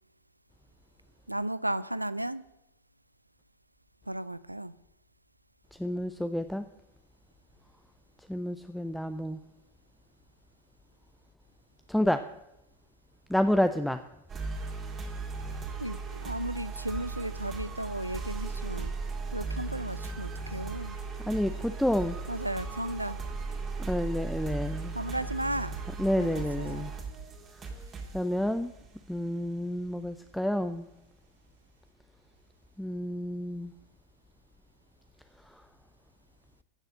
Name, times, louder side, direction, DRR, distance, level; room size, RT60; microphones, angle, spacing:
voice 1, 1.3-2.4 4.1-4.7 15.8-18.9 19.3-21.0 22.3-23.2 24.9-25.8 26.2-26.9, right 1 dB, 85° right, 17 dB, 0.5 m, -34 dB
voice 2, 5.8-6.7 8.3-9.4 11.9-12.2 13.3-14.0 21.2-22.2 23.8-24.9 26.0-26.9 27.6-27.7 28.1-28.7 29.1-30.9 32.8-33.7 35.5-35.6, left 1 dB, ahead, 9 dB, 0.5 m, -29 dB
sound 1, 14.3-30.1, right 4 dB, 25° right, 2.2 m, -37 dB
15.0 x 6.8 x 7.7 m, 0.89 s
figure-of-eight pair, 90°, 0 cm